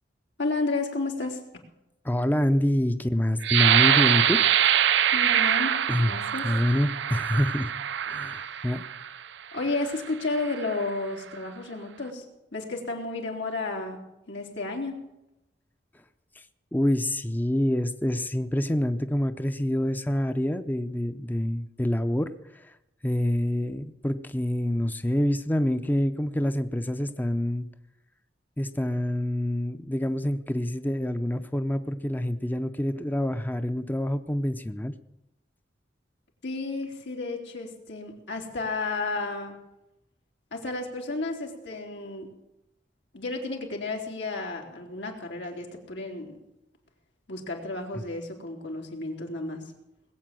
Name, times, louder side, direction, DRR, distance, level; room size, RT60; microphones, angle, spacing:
voice 1, 0.4-1.4 5.1-6.5 8.4-8.6 9.5-12.3 12.5-14.0 14.3-15.0 36.4-39.6 40.5-42.3 43.1-46.4 47.3-49.7, left 3 dB, 90° left, 1 dB, 3.5 m, -32 dB
voice 2, 2.0-4.4 4.9-5.0 5.9-6.1 6.4-7.7 8.0-8.8 16.7-22.6 23.0-27.7 28.6-34.9 47.9-48.0, left 1 dB, 10° left, 9 dB, 0.6 m, -26 dB
sound 1, 3.4-9.1 9.7-9.9 10.4-10.8, right 9 dB, 80° right, 0.6 m, -24 dB
20.0 x 8.4 x 7.6 m, 0.88 s
head